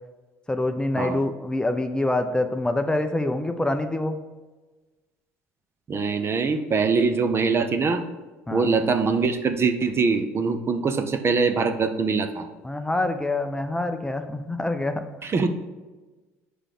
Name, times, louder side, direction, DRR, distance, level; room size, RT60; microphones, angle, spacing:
voice 1, 0.5-4.2 8.5-8.7 12.6-15.0, left 2 dB, 10° left, 7 dB, 0.6 m, -26 dB
voice 2, 5.9-8.0 8.5-12.5 15.2-15.5, right 4 dB, 35° right, 8 dB, 0.8 m, -23 dB
5.0 x 4.9 x 5.8 m, 1.2 s
hypercardioid pair, 70°, 7 cm